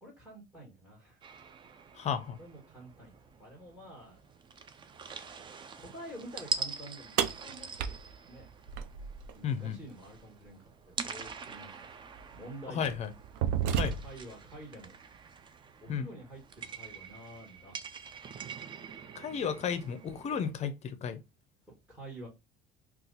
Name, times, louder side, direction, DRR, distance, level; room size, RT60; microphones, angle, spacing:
voice 1, 0.0-1.2 2.4-4.2 5.7-8.5 9.3-11.8 12.3-12.8 14.0-14.9 15.8-17.7 21.7-22.3, right 1 dB, 10° right, 1.5 m, -48 dB
sound 1, 1.2-20.5, right 5 dB, 25° right, 0.4 m, -45 dB
voice 2, 2.0-2.4 9.4-9.8 12.7-13.1 13.8-13.9 15.9-16.0 19.1-21.2, left 7 dB, 35° left, 0.6 m, -33 dB
sound 2, 7.2-9.3 11.2-11.3 12.2-12.4 12.9-14.3, right 8 dB, 85° right, 0.4 m, -32 dB
2.7 x 2.4 x 3.9 m
cardioid pair, 130°, 19 cm